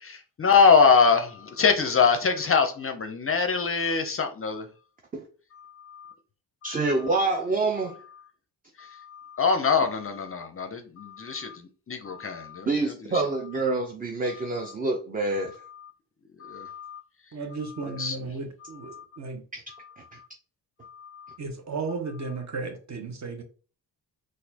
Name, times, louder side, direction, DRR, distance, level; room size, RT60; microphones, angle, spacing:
voice 1, 0.1-4.7 5.5-6.1 6.7-6.8 8.8-13.2 14.3-14.7 15.5-15.9 16.4-17.0 17.9-18.2 18.6-19.1 19.7-20.3 20.8-21.4, left 5 dB, 35° left, 0.5 m, -25 dB
voice 2, 6.6-8.0 12.7-15.6 19.5-19.6, right 3 dB, 20° right, 0.4 m, -26 dB
voice 3, 17.3-19.4 21.4-23.4, right 3 dB, 40° right, 0.9 m, -34 dB
4.0 x 2.5 x 2.8 m
cardioid pair, 105°, 41 cm